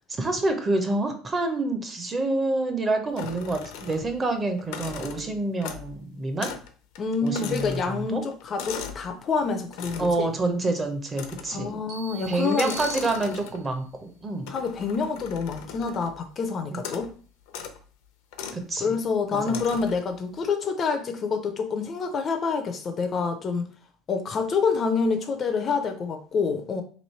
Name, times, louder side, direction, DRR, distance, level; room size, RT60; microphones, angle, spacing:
voice 1, 0.1-6.5 7.2-8.2 10.0-11.8 12.3-14.5 16.7-16.8 18.5-19.0 19.3-19.6, right 2 dB, 20° right, 0.6 m, -27 dB
sound 1, 3.2-4.2 4.6-6.0 6.4-6.7 6.9-9.1 9.7-10.2 11.1-11.7 12.4-13.7 14.5-16.2 16.8-17.1 17.5-17.8 18.3-18.6 19.5-20.0, left 7 dB, 80° left, 0.6 m, -38 dB
voice 2, 7.0-10.3 11.5-12.8 14.5-17.1 18.8-23.7 24.1-26.8, left 5 dB, 30° left, 0.4 m, -27 dB
sound 2, 11.9-13.8, right 7 dB, 60° right, 1.3 m, -41 dB
3.1 x 3.0 x 4.2 m
cardioid pair, 165°, 0 cm